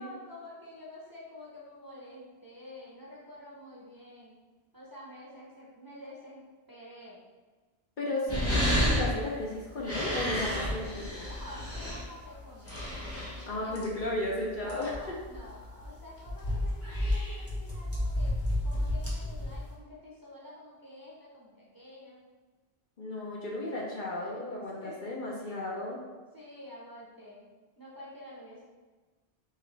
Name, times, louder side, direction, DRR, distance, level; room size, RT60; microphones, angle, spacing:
voice 1, 0.0-4.4 4.7-7.2 8.2-8.4 10.5-10.9 11.2-12.8 13.6-13.9 14.6-18.3 18.6-22.2 23.8-23.9 24.2-24.5 24.8-25.0 26.3-27.5 27.8-28.6, left 1 dB, 20° right, -6 dB, 0.8 m, -48 dB
voice 2, 8.0-11.3 13.5-14.9 23.0-26.0, left 1 dB, 50° left, -3 dB, 0.9 m, -34 dB
sound 1, 8.3-19.7, left 1 dB, 15° left, 0.9 m, -32 dB
4.7 x 3.0 x 3.3 m, 1.3 s
omnidirectional pair, 1.1 m